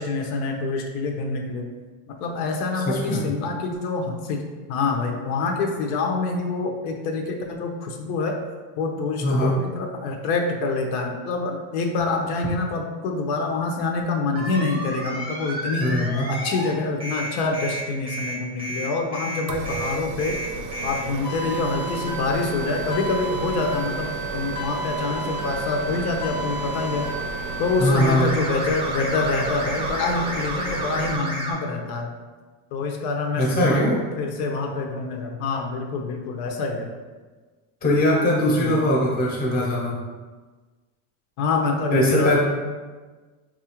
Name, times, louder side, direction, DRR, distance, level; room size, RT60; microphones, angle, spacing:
voice 1, 0.0-1.7 2.1-8.4 8.8-16.0 16.3-20.4 20.8-27.1 27.6-32.1 32.7-36.9 38.5-38.7 41.4-42.4, left 3 dB, 75° left, 2 dB, 0.6 m, -26 dB
voice 2, 2.8-3.3 9.2-9.5 15.8-16.3 27.8-28.3 33.4-34.0 37.8-40.0 41.9-42.4, left 1 dB, 20° left, -3 dB, 0.7 m, -21 dB
sound 1, 14.4-16.7 17.0-31.5, right 1 dB, 15° right, 0.4 m, -32 dB
sound 2, 19.5-31.2, right 4 dB, 70° right, 0.6 m, -33 dB
4.1 x 2.4 x 2.9 m, 1.3 s
supercardioid pair, 140°, 45 cm